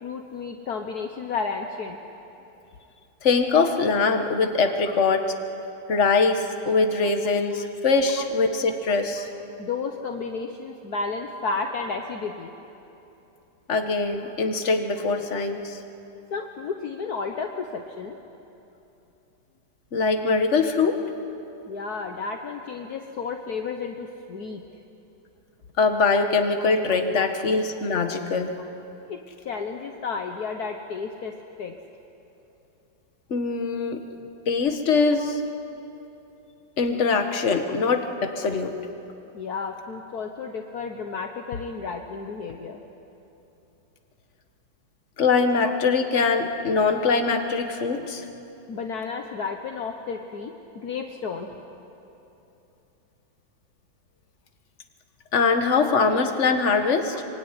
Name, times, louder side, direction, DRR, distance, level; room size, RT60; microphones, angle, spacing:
voice 1, 0.0-2.0 7.5-7.6 8.2-8.3 9.6-12.5 16.3-18.2 21.7-24.6 29.1-29.2 29.4-31.8 35.1-35.3 39.3-42.8 47.3-47.4 48.7-51.5, left 5 dB, 55° left, 4 dB, 1.6 m, -32 dB
voice 2, 3.2-5.3 5.9-9.3 13.7-15.8 19.9-21.0 25.8-28.5 33.3-34.0 34.5-35.4 36.8-38.7 45.2-48.3 55.3-57.2, left 4 dB, 40° left, 6 dB, 1.8 m, -22 dB
25.0 x 24.0 x 9.9 m, 3.0 s
omnidirectional pair, 2.0 m